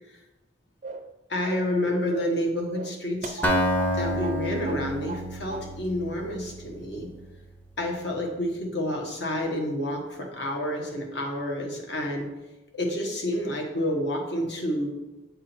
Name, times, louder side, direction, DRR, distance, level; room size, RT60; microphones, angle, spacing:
sound 1, 0.8-1.1 1.5-1.8 2.1-2.4 2.7-4.0 4.2-4.4 4.7-5.3 5.5-5.7, right 4 dB, 40° right, 0.4 m, -38 dB
voice 1, 1.3-3.4 3.9-7.1 7.8-12.3 12.7-14.9, left 1 dB, 65° left, 1 dB, 1.3 m, -29 dB
Acoustic guitar, 3.4-7.3, equal, 10° left, 0.5 m, -28 dB
8.1 x 3.7 x 4.4 m, 1.1 s
head